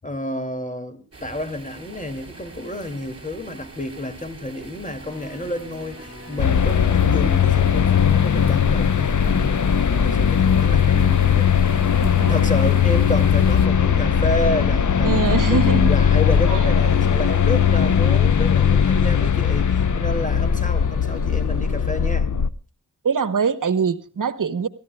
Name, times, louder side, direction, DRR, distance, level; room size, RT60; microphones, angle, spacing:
voice 1, 0.0-11.8 12.3-22.3, left 1 dB, 25° left, 2.6 m, -30 dB
sound 1, 1.1-13.7, right 3 dB, 45° right, 4.5 m, -42 dB
sound 2, 5.1-22.1, left 3 dB, 45° left, 2.7 m, -39 dB
sound 3, 6.4-22.5, left 8 dB, 65° left, 0.8 m, -18 dB
voice 2, 12.0-12.4 15.0-15.9 16.5-16.6 23.0-24.7, right 6 dB, 75° right, 1.1 m, -23 dB
29.5 x 14.5 x 2.3 m
wide cardioid pair, 75°, 32 cm